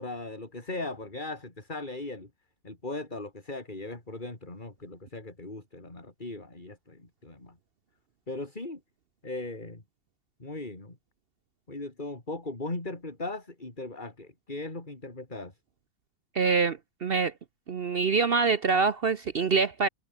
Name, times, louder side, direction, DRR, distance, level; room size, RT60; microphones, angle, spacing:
voice 1, 0.0-2.3 2.6-7.6 8.3-8.8 9.2-9.8 10.4-11.0 11.7-15.5, left 2 dB, 25° left, 3.9 m, -38 dB
voice 2, 16.3-17.3 17.7-19.9, right 5 dB, 65° right, 0.5 m, -25 dB
omnidirectional pair, 2.1 m